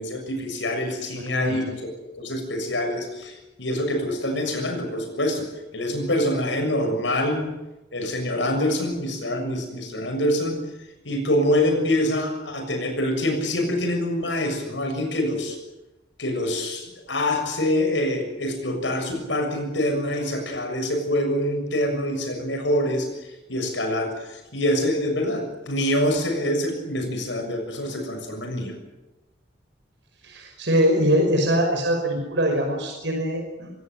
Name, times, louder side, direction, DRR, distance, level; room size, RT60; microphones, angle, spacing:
voice 1, 0.0-1.7 2.2-5.5 5.7-7.5 7.9-10.6 11.1-15.6 16.2-23.1 23.5-28.7, left 1 dB, 90° left, 5 dB, 6.9 m, -25 dB
voice 2, 30.2-33.7, equal, 80° right, 2 dB, 5.6 m, -22 dB
25.5 x 16.5 x 9.2 m, 1.1 s
head